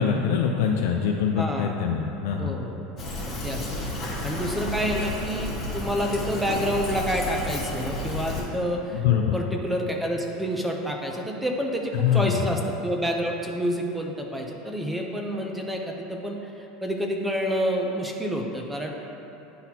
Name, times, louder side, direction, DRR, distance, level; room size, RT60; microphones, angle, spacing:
voice 1, 0.0-2.5 8.9-9.4 11.9-12.4, left 7 dB, 80° left, 1 dB, 0.4 m, -24 dB
voice 2, 1.4-1.8 2.4-2.8 3.2-3.7 4.2-9.0 9.3-18.9, equal, 5° right, 1 dB, 0.5 m, -28 dB
Fill (with liquid), 3.0-8.4, left 1 dB, 25° left, 1.4 m, -31 dB
10.0 x 4.1 x 2.8 m, 2.9 s
supercardioid pair, 155°, 0 cm